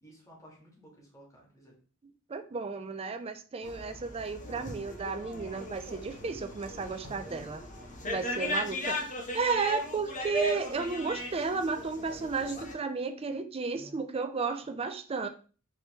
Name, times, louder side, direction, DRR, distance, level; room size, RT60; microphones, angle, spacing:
voice 1, 0.0-1.7 8.3-8.7 13.7-14.0, equal, 15° left, -3 dB, 1.6 m, -53 dB
voice 2, 2.3-7.6 8.1-9.0 9.3-15.3, right 4 dB, 25° right, 8 dB, 0.4 m, -33 dB
sound 1, 3.6-12.7, left 1 dB, 35° left, 0.9 m, -37 dB
4.8 x 3.0 x 3.0 m, 0.38 s
head